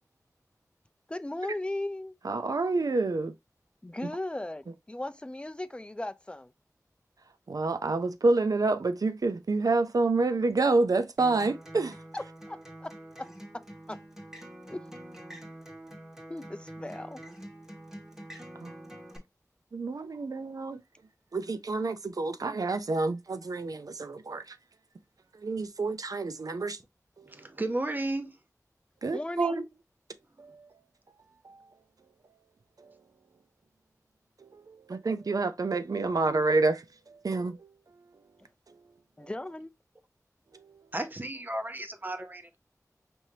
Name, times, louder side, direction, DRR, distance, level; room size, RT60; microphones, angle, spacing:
voice 1, 1.1-2.2 3.8-6.5 12.1-12.9 13.2-13.3 13.5-13.6 13.9-14.0 14.7-14.8 16.3-17.2 29.1-29.7 39.2-39.7, left 1 dB, 15° left, 0.4 m, -37 dB
voice 2, 2.2-3.3 7.5-11.9 18.6-18.7 19.7-20.8 21.3-24.4 25.4-26.8 29.0-29.5 31.5-31.6 34.7-36.8 37.2-37.6, right 3 dB, 75° right, 0.5 m, -28 dB
Acoustic guitar, 11.2-19.2, right 1 dB, 10° right, 1.3 m, -46 dB
voice 3, 27.3-28.3 40.9-42.6, right 1 dB, 30° right, 0.7 m, -33 dB
5.3 x 3.2 x 2.7 m
wide cardioid pair, 60°, 6 cm